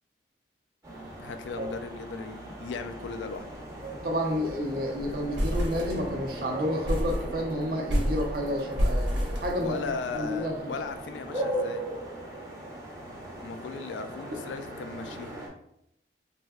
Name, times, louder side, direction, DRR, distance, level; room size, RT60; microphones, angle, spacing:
sound 1, 0.8-15.5, right 1 dB, 20° right, 0.6 m, -38 dB
voice 1, 1.2-3.5 9.6-11.9 13.4-15.4, left 4 dB, 85° left, 9 dB, 0.3 m, -37 dB
sound 2, 3.5-3.6 3.9-4.0 4.3-4.6 5.0-6.4 6.8-10.1, equal, 90° right, 0.9 m, -30 dB
voice 2, 4.0-10.9, equal, 55° right, 1 dB, 0.6 m, -30 dB
3.2 x 2.7 x 2.3 m, 0.76 s
head